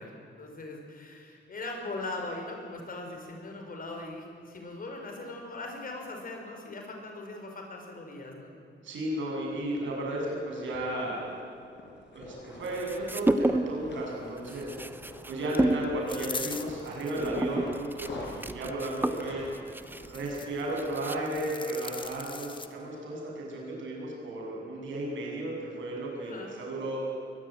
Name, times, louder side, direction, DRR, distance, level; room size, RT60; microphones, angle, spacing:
voice 1, 0.0-8.5 26.2-26.6, left 2 dB, 50° left, 2 dB, 5.5 m, -40 dB
voice 2, 8.8-11.3 12.1-14.7 15.3-19.4 20.1-27.0, right 1 dB, 90° right, -2 dB, 7.7 m, -34 dB
sound 1, 9.5-9.8 10.7-11.4 11.7-13.2 13.6-14.1 14.5-16.2 16.5-21.0, left 2 dB, 65° left, 5.6 m, -46 dB
sound 2, 12.6-13.9 14.2-21.5, right 1 dB, 10° right, 1.0 m, -31 dB
sound 3, 16.1-17.3 17.9-18.5 19.8-20.6 21.0-22.7, left 3 dB, 25° left, 1.4 m, -40 dB
22.5 x 19.5 x 9.2 m, 2.4 s
cardioid pair, 105°, 19 cm